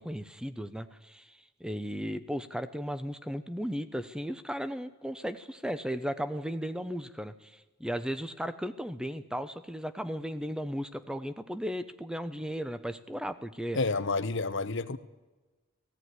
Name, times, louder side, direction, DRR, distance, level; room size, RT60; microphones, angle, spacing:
voice 1, 0.0-13.8, equal, 5° right, 0.8 m, -36 dB
voice 2, 13.7-15.0, left 3 dB, 60° left, 0.9 m, -29 dB
17.0 x 16.5 x 9.6 m
head